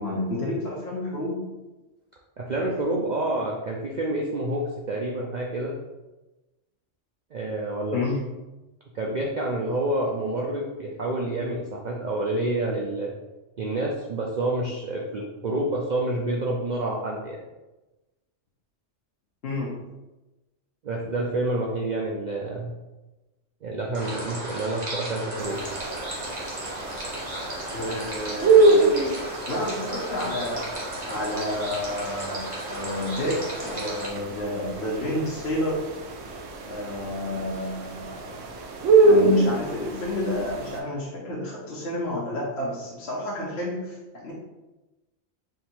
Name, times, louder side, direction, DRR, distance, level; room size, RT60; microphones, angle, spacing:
voice 1, 0.0-1.4 7.9-8.2 19.4-19.7 27.7-28.9 29.5-35.8 36.6-38.3 39.0-44.3, left 1 dB, 60° left, -5 dB, 1.1 m, -30 dB
voice 2, 2.4-5.7 7.3-8.0 8.9-13.1 13.6-17.4 20.8-22.7 23.6-25.6, right 1 dB, 55° right, -2 dB, 0.5 m, -28 dB
sound 1, 23.9-34.1, right 1 dB, 35° right, 1.1 m, -35 dB
sound 2, 25.4-40.8, right 3 dB, 85° right, 1.0 m, -25 dB
3.8 x 2.8 x 4.3 m, 1.1 s
omnidirectional pair, 1.3 m